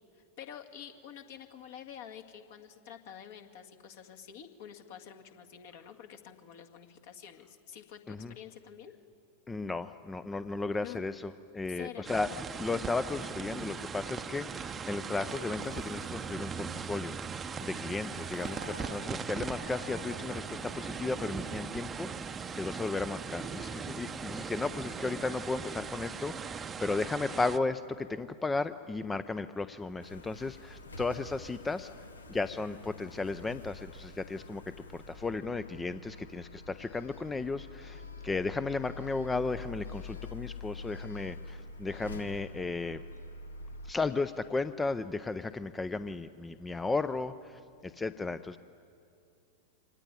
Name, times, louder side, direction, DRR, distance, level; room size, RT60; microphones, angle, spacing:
voice 1, 0.1-8.9 10.8-11.0 11.7-12.1, left 9 dB, 50° left, 5 dB, 1.9 m, -48 dB
voice 2, 9.5-12.3 12.6-31.9 32.3-34.6 34.9-43.0 43.8-48.6, left 3 dB, 10° left, 13 dB, 0.6 m, -35 dB
sound 1, 12.0-27.6, right 6 dB, 20° right, 0.8 m, -39 dB
Sliding door, 15.3-16.8 17.6-22.2, right 1 dB, 85° right, 1.3 m, -52 dB
sound 2, 30.0-43.9, left 3 dB, 75° left, 1.2 m, -46 dB
25.0 x 19.0 x 9.7 m, 2.5 s
figure-of-eight pair, 90°, 0 cm